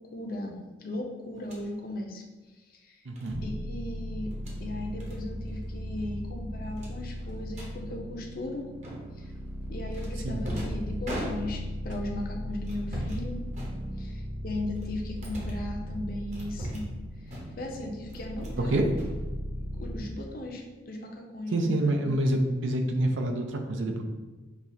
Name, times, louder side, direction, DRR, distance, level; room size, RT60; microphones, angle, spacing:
voice 1, 0.1-2.2 2.7-3.1 3.4-4.3 4.6-8.7 9.2-9.3 9.7-13.4 14.0-16.9 17.3-18.8 19.7-22.1, left 1 dB, 50° left, 1 dB, 0.6 m, -37 dB
sound 1, 1.4-1.7 3.2-3.4 4.2-4.6 5.0-5.2 5.5-5.7 6.0-6.1 6.8-7.7 8.8-9.3 9.9-11.8 12.6-13.2 13.5-14.2 14.7-15.7 16.3-17.0 17.3-17.7 18.1-18.6 18.9-19.8, equal, 35° right, 0.8 m, -39 dB
voice 2, 3.1-3.4 10.2-10.4 18.6-18.9 21.5-24.0, right 1 dB, 90° right, 4 dB, 0.5 m, -27 dB
sound 2, 3.3-20.0, equal, 15° right, 0.4 m, -37 dB
6.1 x 2.4 x 2.7 m, 1.2 s
head